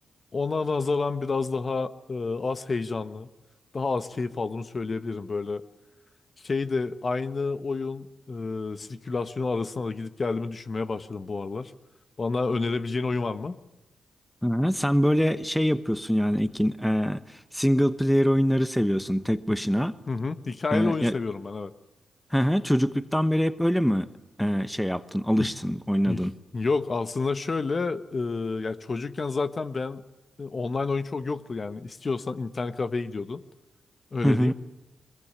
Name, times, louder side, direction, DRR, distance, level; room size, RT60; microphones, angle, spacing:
voice 1, 0.3-3.3 3.7-5.6 6.4-11.7 12.2-13.6 20.1-21.7 25.4-25.5 26.1-26.3 26.5-30.0 30.4-33.4 34.1-34.5, left 4 dB, 45° left, 12 dB, 1.3 m, -29 dB
voice 2, 14.4-20.0 20.7-21.2 22.3-24.1 24.4-26.3 34.2-34.5, equal, 5° left, 13 dB, 1.1 m, -24 dB
22.0 x 22.0 x 10.0 m, 0.97 s
cardioid pair, 60°, 0 cm